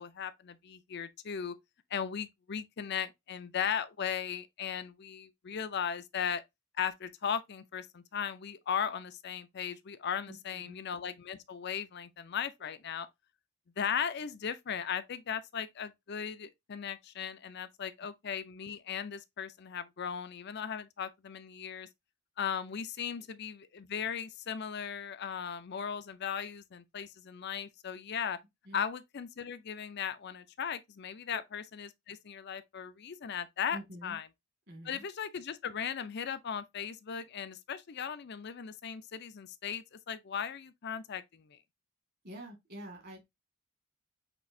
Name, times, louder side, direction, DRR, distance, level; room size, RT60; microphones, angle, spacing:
voice 1, 0.0-1.6 1.9-6.4 6.8-13.1 13.8-21.9 22.4-28.4 28.7-34.3 34.8-41.6, left 7 dB, 55° left, 0.5 m, -37 dB
voice 2, 33.7-34.2 34.7-35.0 42.2-43.2, equal, 50° right, 2.0 m, -47 dB
6.0 x 2.8 x 2.6 m
head